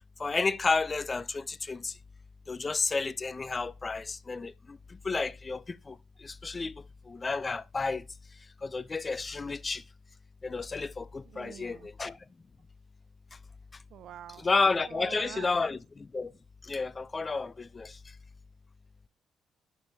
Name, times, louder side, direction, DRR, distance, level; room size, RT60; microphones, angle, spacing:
voice 1, 0.2-1.9 2.5-4.8 5.0-6.7 7.1-8.0 8.6-9.8 10.4-12.2 14.4-16.3 16.6-18.0, left 4 dB, 30° left, 0.4 m, -31 dB
voice 2, 11.3-11.9 13.9-14.5 14.8-15.5, right 11 dB, 75° right, 0.3 m, -46 dB
13.5 x 5.3 x 2.7 m
cardioid pair, 90°, 0 cm